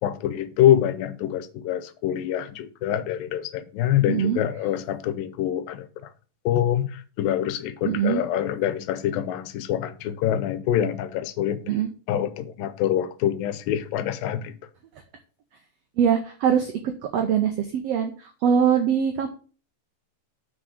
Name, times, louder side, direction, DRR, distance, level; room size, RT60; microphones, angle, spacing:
voice 1, 0.0-6.1 6.5-11.6 12.1-14.5, left 11 dB, 90° left, 2.5 m, -25 dB
voice 2, 4.1-4.4 7.9-8.2 11.7-11.9 16.0-19.3, right 8 dB, 90° right, 1.4 m, -23 dB
6.1 x 5.6 x 6.4 m
omnidirectional pair, 4.0 m